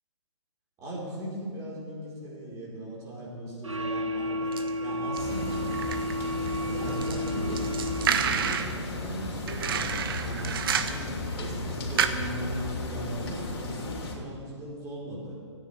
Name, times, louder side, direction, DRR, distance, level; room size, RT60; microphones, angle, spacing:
voice 1, 0.8-5.6 6.6-15.3, right 1 dB, 20° right, -5 dB, 4.3 m, -38 dB
sound 1, 3.6-8.5, left 1 dB, 85° right, 1.1 m, -32 dB
sound 2, 4.5-4.7 5.2-6.6 6.8-8.8 9.5-11.1 11.5-11.6 11.9-12.1, right 8 dB, 50° right, 0.9 m, -29 dB
sound 3, 5.2-14.1, left 2 dB, 55° left, 3.1 m, -35 dB
29.5 x 9.9 x 3.4 m, 2.2 s
figure-of-eight pair, 130°, 15 cm